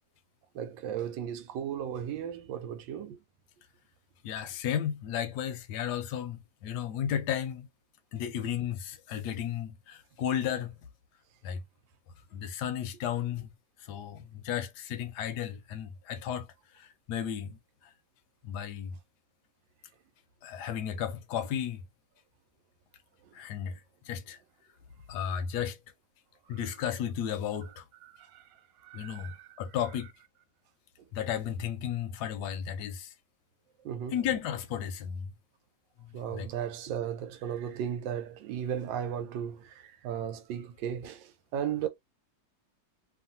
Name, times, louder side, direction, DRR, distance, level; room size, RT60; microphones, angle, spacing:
voice 1, 0.5-3.2 28.3-28.4 28.8-29.5 33.8-34.2 36.1-39.7 40.0-41.9, right 9 dB, 85° right, 1.3 m, -35 dB
voice 2, 4.2-7.7 8.1-10.7 11.4-11.6 12.3-13.5 13.9-16.5 16.8-17.6 18.4-18.9 20.4-21.8 23.3-23.8 24.1-24.4 25.1-25.8 26.5-27.8 28.9-30.1 31.1-33.1 34.1-35.3 36.0-36.5, left 9 dB, 70° left, 1.1 m, -34 dB
3.0 x 2.4 x 2.5 m
omnidirectional pair, 2.0 m